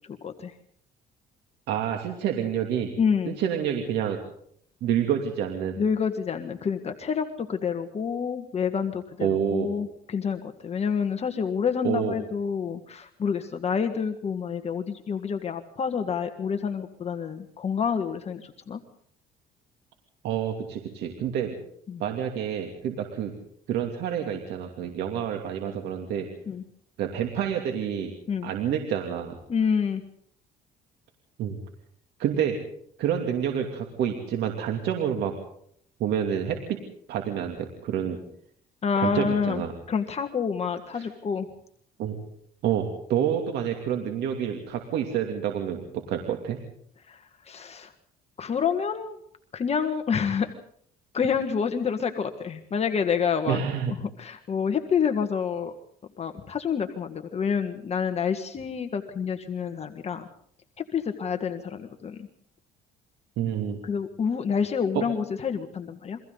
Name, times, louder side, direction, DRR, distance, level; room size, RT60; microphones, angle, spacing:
voice 1, 0.2-0.5 3.0-3.4 5.8-18.8 21.9-22.0 26.5-26.6 28.3-28.5 29.5-30.0 38.8-39.6 39.9-41.5 47.1-47.9 48.4-49.2 49.5-50.5 51.1-53.6 54.2-55.7 56.2-60.3 60.9-62.3 63.8-66.2, left 6 dB, 40° left, 6 dB, 1.8 m, -28 dB
voice 2, 1.7-2.9 3.2-4.2 4.8-5.8 9.2-9.7 11.8-12.2 20.2-21.6 22.0-23.3 23.7-26.3 27.0-28.1 28.4-29.4 31.4-31.6 32.2-32.6 33.0-35.3 36.0-36.8 37.1-38.2 39.0-39.7 40.9-41.0 42.0-42.2 42.6-46.6 53.5-53.9 63.4-63.8 64.9-65.0, right 9 dB, 80° right, 3 dB, 2.9 m, -28 dB
29.5 x 24.0 x 4.0 m, 0.65 s
cardioid pair, 110°, 17 cm